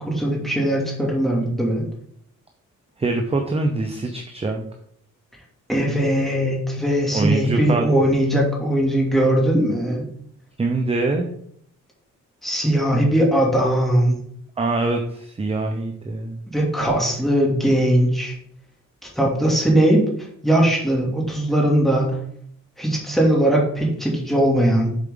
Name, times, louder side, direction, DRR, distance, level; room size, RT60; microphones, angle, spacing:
voice 1, 0.0-1.8 5.7-10.1 12.4-14.2 16.5-18.3 19.2-20.0 20.4-22.2 22.8-24.9, right 1 dB, ahead, -3 dB, 2.4 m, -19 dB
voice 2, 3.0-4.6 7.1-7.9 10.6-11.3 14.6-16.5, right 3 dB, 20° right, 3 dB, 0.7 m, -24 dB
7.3 x 4.5 x 3.8 m, 0.67 s
cardioid pair, 105°, 31 cm